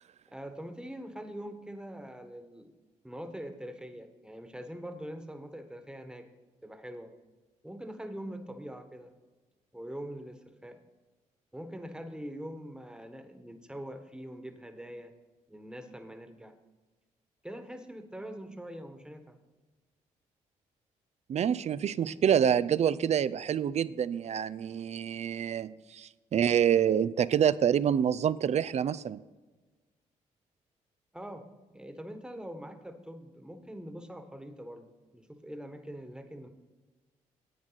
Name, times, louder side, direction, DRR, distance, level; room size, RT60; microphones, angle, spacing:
voice 1, 0.3-2.7 3.0-6.3 6.6-7.1 7.6-9.1 9.7-10.8 11.5-15.1 15.5-16.5 17.4-19.4 22.0-22.4 31.1-36.5, equal, 5° right, 7 dB, 1.4 m, -43 dB
voice 2, 21.3-29.2, right 9 dB, 50° right, 16 dB, 0.4 m, -27 dB
10.0 x 8.6 x 4.0 m, 1.2 s
supercardioid pair, 55°, 14 cm